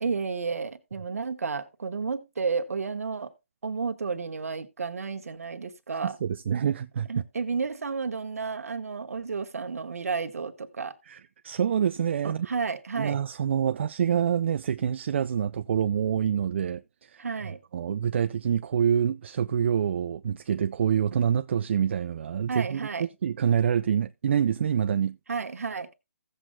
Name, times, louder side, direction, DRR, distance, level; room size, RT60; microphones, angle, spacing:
voice 1, 0.0-3.3 3.6-6.2 7.1-11.0 12.2-13.2 17.2-17.6 22.5-23.1 25.3-25.9, right 5 dB, 75° right, 1.3 m, -32 dB
voice 2, 6.0-7.1 11.1-12.5 13.0-17.3 17.7-25.2, right 8 dB, 50° right, 0.4 m, -26 dB
16.0 x 7.7 x 2.2 m
hypercardioid pair, 155°, 8 cm